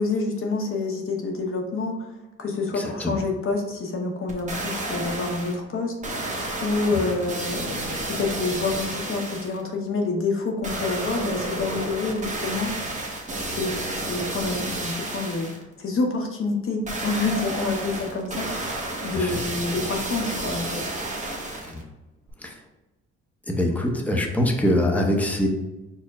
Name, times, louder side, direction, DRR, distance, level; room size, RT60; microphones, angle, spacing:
voice 1, 0.0-2.0 2.4-6.2 6.6-7.7 8.1-13.1 13.4-15.5 15.8-18.5 19.0-20.8 23.7-23.8, left 3 dB, 45° left, 1 dB, 0.8 m, -27 dB
voice 2, 2.7-3.2 6.9-7.0 19.1-19.4 21.6-21.8 22.4-22.5 23.5-25.5, left 1 dB, 5° left, 1 dB, 0.7 m, -24 dB
sound 1, 4.3-5.6 6.0-9.6 10.6-15.6 16.9-21.8 22.3-22.4, right 2 dB, 25° right, 0.9 m, -31 dB
4.5 x 2.1 x 4.6 m, 1.1 s
cardioid pair, 90°, 30 cm